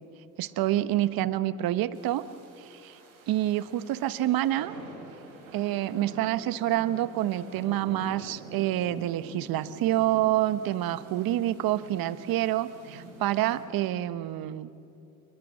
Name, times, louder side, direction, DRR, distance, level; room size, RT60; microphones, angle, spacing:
voice 1, 0.4-2.2 2.6-3.0 3.3-4.7 5.5-14.7, right 13 dB, 60° right, 14 dB, 1.2 m, -27 dB
sound 1, 1.9-13.6, right 2 dB, 85° right, 7.1 m, -47 dB
29.5 x 21.5 x 7.6 m, 2.8 s
hypercardioid pair, 65°, 40 cm